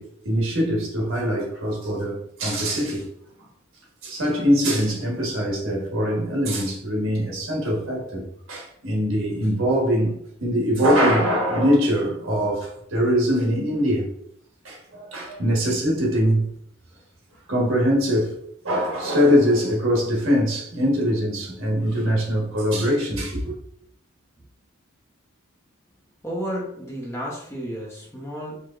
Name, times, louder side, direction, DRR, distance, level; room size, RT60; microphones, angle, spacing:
voice 1, 0.0-3.1 4.0-14.1 14.6-16.5 17.5-18.4 18.6-23.6, equal, 75° right, 1.2 m, -22 dB
voice 2, 26.2-28.6, equal, 15° left, 0.9 m, -32 dB
4.7 x 2.9 x 2.5 m
head